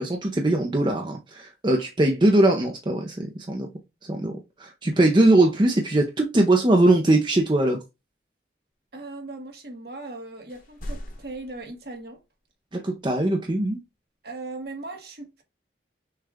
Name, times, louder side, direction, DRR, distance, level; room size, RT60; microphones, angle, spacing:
voice 1, 0.0-3.7 4.1-4.3 4.6-7.8 12.7-13.8, right 1 dB, 25° right, 0.6 m, -21 dB
voice 2, 8.9-12.2 14.2-15.4, right 2 dB, 55° right, 1.3 m, -38 dB
sound 1, 10.5-12.1 14.6-14.7, equal, 45° left, 1.2 m, -39 dB
6.4 x 2.3 x 3.5 m
head